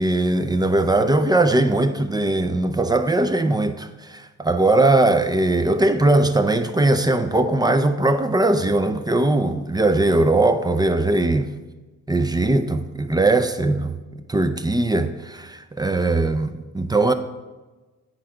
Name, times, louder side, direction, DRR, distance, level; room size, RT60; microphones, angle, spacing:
voice 1, 0.0-11.5 12.1-17.1, right 2 dB, 15° right, 0.5 m, -20 dB
9.7 x 3.7 x 4.5 m
cardioid pair, 90°, 30 cm